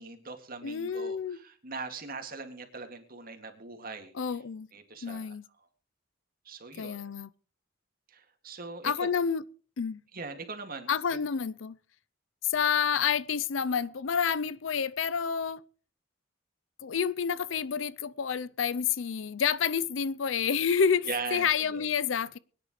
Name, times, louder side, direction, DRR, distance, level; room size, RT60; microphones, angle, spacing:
voice 1, 0.0-4.1 4.7-5.4 6.5-7.0 8.1-9.1 10.1-11.2 21.0-21.9, right 4 dB, 50° right, 2.2 m, -40 dB
voice 2, 0.6-1.4 4.1-4.7 5.0-5.4 6.8-7.3 8.8-9.4 9.8-10.0 10.9-11.8 12.4-15.6 16.8-22.4, left 7 dB, 80° left, 0.5 m, -29 dB
23.5 x 10.0 x 3.1 m
head